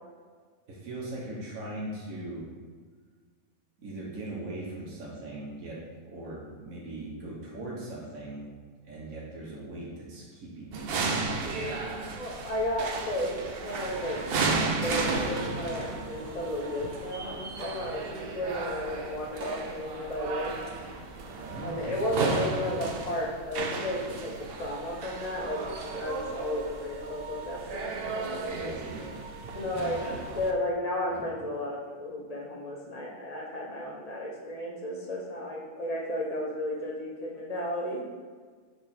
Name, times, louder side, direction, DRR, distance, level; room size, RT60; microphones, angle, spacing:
voice 1, 0.7-2.5 3.8-8.4 8.8-11.7 21.4-22.1 28.5-29.2 29.7-30.2 31.1-31.4, right 2 dB, 90° right, -5 dB, 1.6 m, -40 dB
sound 1, 10.7-30.5, right 3 dB, 55° right, 0.7 m, -34 dB
voice 2, 12.2-14.2 14.7-20.6 21.6-28.8 29.4-30.0 30.3-38.0, left 1 dB, 30° left, -2 dB, 1.0 m, -33 dB
6.8 x 3.4 x 4.3 m, 1.5 s
omnidirectional pair, 1.4 m